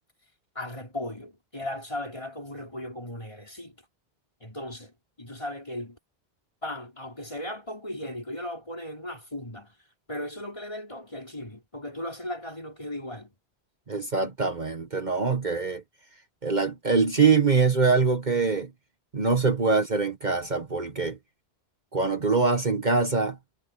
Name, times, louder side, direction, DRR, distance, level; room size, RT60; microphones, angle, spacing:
voice 1, 0.5-3.8 4.4-6.0 6.6-9.8 10.1-13.3, left 1 dB, 30° left, 4.7 m, -37 dB
voice 2, 13.9-15.8 16.4-18.7 19.1-21.2 21.9-23.4, right 4 dB, 45° right, 1.4 m, -24 dB
omnidirectional pair, 1.1 m